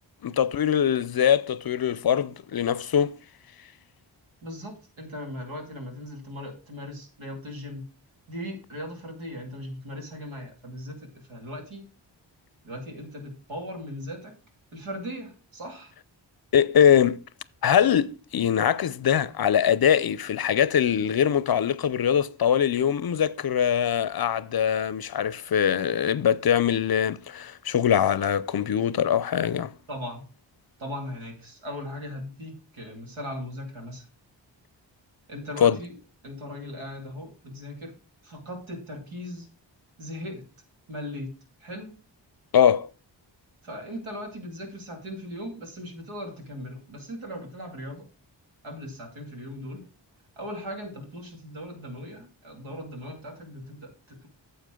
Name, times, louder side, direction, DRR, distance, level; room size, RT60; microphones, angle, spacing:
voice 1, 0.2-3.1 16.5-17.2 17.6-29.7 35.6-35.8 42.5-42.9, left 9 dB, 50° left, 0.6 m, -22 dB
voice 2, 4.4-7.8 8.3-11.8 12.6-14.4 14.7-15.9 29.9-30.2 30.8-34.1 35.3-36.0 36.2-38.0 38.2-39.5 40.0-40.4 40.9-41.3 41.6-41.9 43.6-48.1 48.6-49.8 50.4-54.3, equal, 85° right, 2.4 m, -38 dB
9.3 x 7.2 x 3.7 m
cardioid pair, 40°, 47 cm